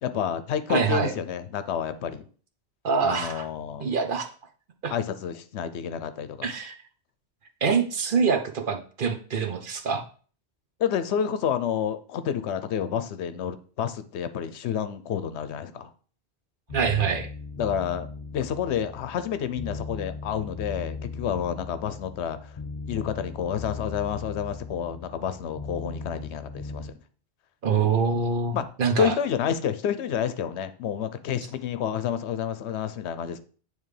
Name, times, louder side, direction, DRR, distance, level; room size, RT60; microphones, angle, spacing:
voice 1, 0.0-2.3 3.0-3.9 4.9-6.5 10.8-15.9 17.6-18.1 18.3-22.5 22.9-27.0 28.5-28.7 29.0-33.4, left 8 dB, 80° left, 12 dB, 0.9 m, -29 dB
voice 2, 0.7-1.1 2.8-3.4 3.8-4.3 4.8-4.9 6.4-6.7 7.6-10.0 16.7-17.3 27.6-29.1, right 5 dB, 55° right, 5 dB, 0.8 m, -25 dB
sound 1, 16.7-26.9, left 4 dB, 40° left, 0.6 m, -38 dB
8.9 x 3.3 x 3.2 m, 0.41 s
omnidirectional pair, 1.1 m